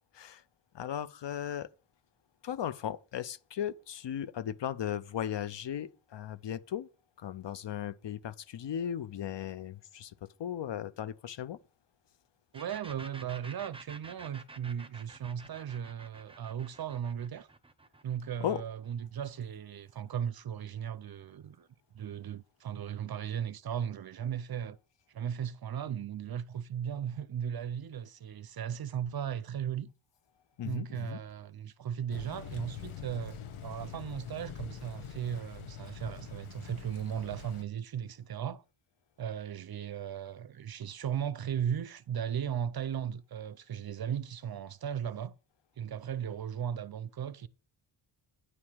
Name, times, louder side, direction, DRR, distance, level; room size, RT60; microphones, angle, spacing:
voice 1, 0.7-1.7 2.4-6.9 7.2-11.6 18.4-18.6 30.6-31.2, left 10 dB, 60° left, 0.7 m, -37 dB
sound 1, 12.5-20.1, right 2 dB, 10° right, 0.7 m, -51 dB
voice 2, 12.5-17.5 18.0-21.7 21.9-24.8 25.1-29.9 30.6-38.6 39.2-45.3 45.8-47.5, right 9 dB, 50° right, 0.5 m, -37 dB
Thunder / Rain, 32.1-37.6, left 8 dB, 75° left, 1.2 m, -45 dB
9.8 x 4.8 x 7.2 m
wide cardioid pair, 150°, 50 cm